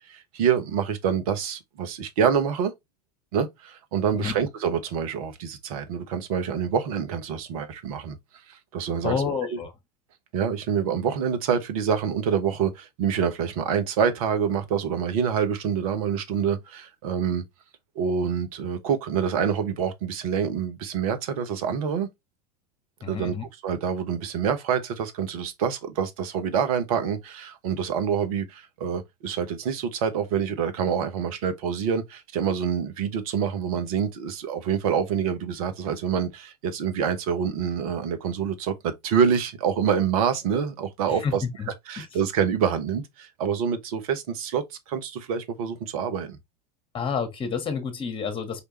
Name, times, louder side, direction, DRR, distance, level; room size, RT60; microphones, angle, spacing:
voice 1, 0.1-2.7 3.3-8.2 8.5-9.2 10.3-17.4 17.9-22.1 23.1-23.3 23.6-41.4 41.9-46.4, right 7 dB, 60° right, 1.1 m, -26 dB
voice 2, 9.0-9.7 23.0-23.4 41.1-41.7 42.0-42.1 46.9-48.6, left 6 dB, 25° left, 1.7 m, -29 dB
4.9 x 3.3 x 3.1 m
figure-of-eight pair, 85°, 20 cm